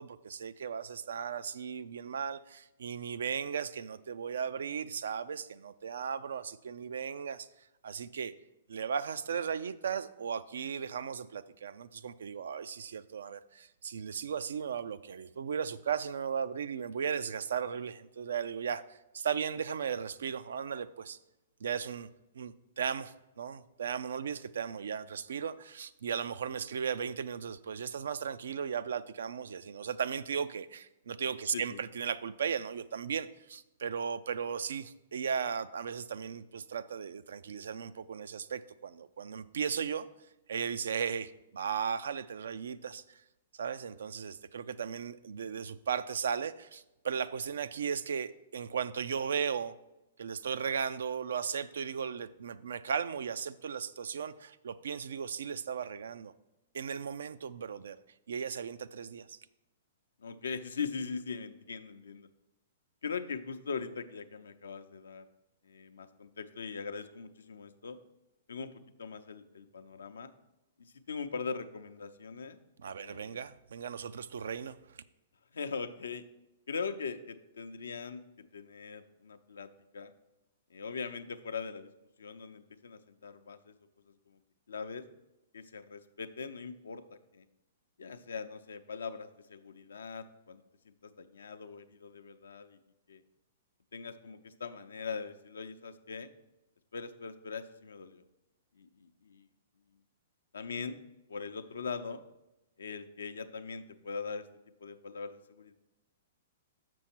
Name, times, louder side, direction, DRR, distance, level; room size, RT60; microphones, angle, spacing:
voice 1, 0.0-7.5 7.8-8.3 8.7-21.2 21.6-22.1 22.3-40.1 40.5-43.2 43.5-49.7 50.2-56.3 56.7-58.0 58.3-59.4 72.8-74.8, right 7 dB, 70° right, 14 dB, 0.3 m, -36 dB
voice 2, 60.2-62.3 63.0-65.2 65.6-68.0 68.5-70.3 70.8-72.6 72.9-73.4 75.5-76.3 76.7-78.2 78.5-79.7 79.9-80.1 80.7-81.9 82.2-83.7 84.1-84.4 84.7-85.0 85.5-87.0 87.3-87.4 88.0-90.6 91.0-92.8 93.1-93.2 93.9-96.3 96.9-98.2 98.8-99.4 100.5-101.0 101.3-102.2 102.8-104.4 104.8-105.7, left 5 dB, 75° left, 9 dB, 0.5 m, -41 dB
7.0 x 6.1 x 4.5 m, 0.94 s
hypercardioid pair, 115°, 0 cm